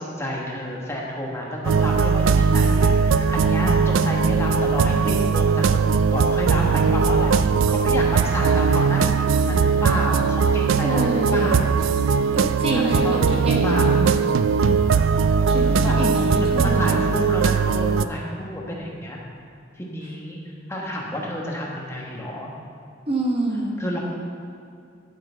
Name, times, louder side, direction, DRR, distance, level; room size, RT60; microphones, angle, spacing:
voice 1, 0.0-12.3 12.6-14.0 15.7-16.0 16.4-19.2 19.8-20.4 20.7-22.5 23.8-24.0, equal, 15° left, -3 dB, 1.3 m, -30 dB
sound 1, 1.6-18.1, right 5 dB, 85° right, 0.3 m, -19 dB
voice 2, 10.8-11.6 12.3-14.1 15.5-17.1 23.1-23.8, right 1 dB, 30° right, -1 dB, 1.0 m, -27 dB
12.0 x 6.6 x 4.5 m, 2.4 s
head